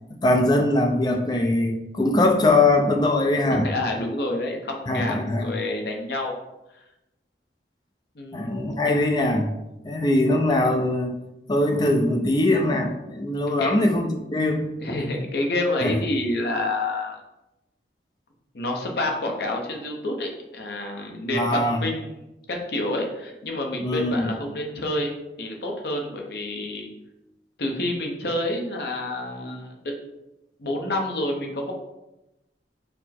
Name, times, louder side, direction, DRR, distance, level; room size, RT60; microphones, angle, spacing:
voice 1, 0.1-3.7 4.9-5.5 8.3-9.5 9.8-11.2 11.5-14.7 15.8-15.9 21.3-21.8 23.8-24.3, left 2 dB, 25° left, 3 dB, 0.4 m, -22 dB
voice 2, 3.5-6.4 8.2-8.7 13.6-13.8 14.8-17.2 18.5-22.1 22.5-25.1 25.4-26.9 27.6-29.7 30.6-31.7, left 1 dB, 65° left, 1 dB, 0.7 m, -28 dB
4.3 x 2.1 x 4.2 m, 0.94 s
head